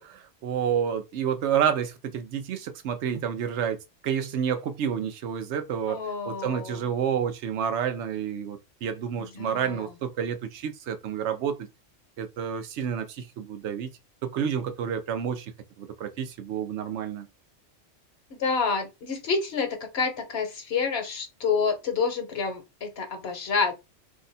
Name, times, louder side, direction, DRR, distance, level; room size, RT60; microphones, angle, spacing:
voice 1, 0.0-3.8 4.0-6.0 6.2-11.7 12.2-13.9 14.2-15.5 15.8-17.3, right 8 dB, 70° right, 0.9 m, -29 dB
voice 2, 5.9-6.9 9.2-9.9 18.3-23.7, left 5 dB, 60° left, 1.0 m, -28 dB
2.8 x 2.2 x 3.9 m
omnidirectional pair, 1.2 m